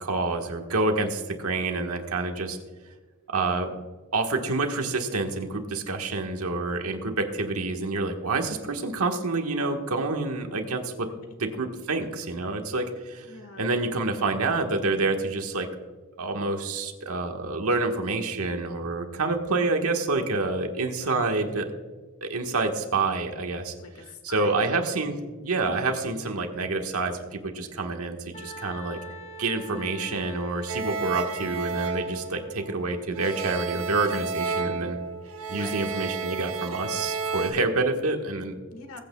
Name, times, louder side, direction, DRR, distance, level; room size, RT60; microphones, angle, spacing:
voice 1, 0.0-2.6 3.3-3.7 4.1-11.1 11.4-13.3 13.6-15.7 16.2-21.7 22.2-23.7 24.2-29.0 29.4-35.0 35.5-38.5, right 3 dB, 90° right, 4 dB, 1.4 m, -28 dB
voice 2, 13.2-13.7 21.0-21.4 23.8-24.6 25.7-25.8 29.7-30.1 35.5-35.8 38.7-39.0, left 3 dB, 80° left, 6 dB, 1.5 m, -45 dB
Wind instrument woodwind instrument, 28.3-33.0, equal, 30° left, 1.0 m, -44 dB
sound 1, 30.7-32.8 33.1-37.5, right 4 dB, 65° right, 1.0 m, -32 dB
21.0 x 8.7 x 2.3 m, 1.4 s
head